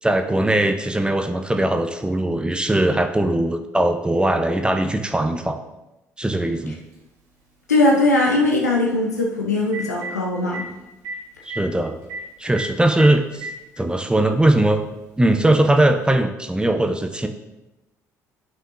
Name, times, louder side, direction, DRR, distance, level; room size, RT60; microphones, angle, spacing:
voice 1, 0.0-5.6 6.2-6.8 11.5-12.0 12.4-13.5 13.8-14.8 15.2-17.3, right 1 dB, 10° right, 6 dB, 0.7 m, -20 dB
Telephone, 6.9-7.0 9.2-9.3 9.6-10.1 10.5-10.6 11.0-11.2 11.4-11.6 12.1-12.2 12.6-12.7 13.0-13.5 14.5-14.6 16.1-16.2, right 3 dB, 75° right, 2.7 m, -31 dB
voice 2, 7.7-10.6, left 2 dB, 90° left, -1 dB, 0.7 m, -19 dB
11.5 x 5.6 x 2.6 m, 0.96 s
figure-of-eight pair, 50°, 9 cm